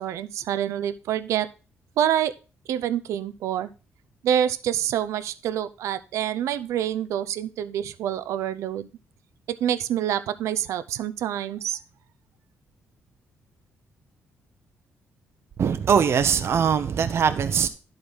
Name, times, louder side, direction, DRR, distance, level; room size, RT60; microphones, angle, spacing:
voice 1, 0.0-1.5 2.0-2.3 2.7-3.7 4.2-8.9 9.5-11.8, right 10 dB, 85° right, 0.6 m, -26 dB
voice 2, 15.6-17.7, right 7 dB, 60° right, 0.8 m, -21 dB
11.5 x 4.0 x 6.1 m
cardioid pair, 85°, 5 cm